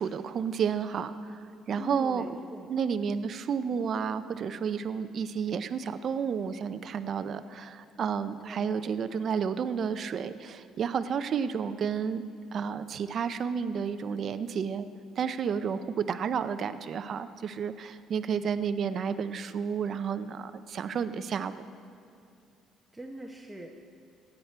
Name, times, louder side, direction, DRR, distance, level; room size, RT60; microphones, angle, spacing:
voice 1, 0.0-1.4 1.7-2.4 2.7-12.2 12.5-14.9 15.2-21.6, right 7 dB, 50° right, 11 dB, 0.5 m, -31 dB
voice 2, 1.7-2.7 8.4-8.7 22.9-23.7, right 1 dB, 10° right, 1 dB, 0.8 m, -42 dB
15.5 x 9.6 x 4.4 m, 2.6 s
cardioid pair, 115°, 0 cm